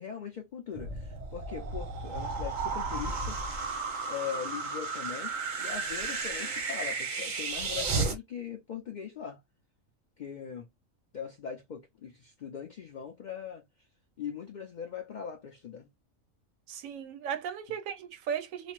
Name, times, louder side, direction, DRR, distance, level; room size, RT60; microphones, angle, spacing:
voice 1, 0.0-3.4 4.0-9.4 10.2-10.7 11.1-13.6 14.2-15.9, left 8 dB, 70° left, 0.4 m, -40 dB
sound 1, 0.7-8.2, right 4 dB, 45° right, 0.7 m, -33 dB
voice 2, 16.7-18.7, right 8 dB, 85° right, 1.0 m, -36 dB
3.1 x 2.0 x 2.9 m
omnidirectional pair, 1.4 m